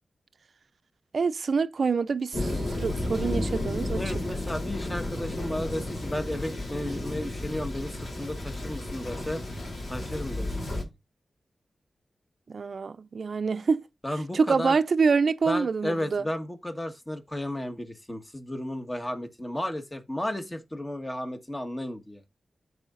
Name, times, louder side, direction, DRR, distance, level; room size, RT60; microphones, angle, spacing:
voice 1, 1.1-4.0 12.5-13.8 14.3-16.2, right 5 dB, 65° right, 0.5 m, -26 dB
Thunder, 2.3-10.8, left 1 dB, 65° left, 3.5 m, -32 dB
voice 2, 3.9-9.4 9.9-10.8 14.0-14.7 15.5-22.2, left 1 dB, 20° left, 1.5 m, -33 dB
13.5 x 4.8 x 2.5 m
wide cardioid pair, 75°, 0 cm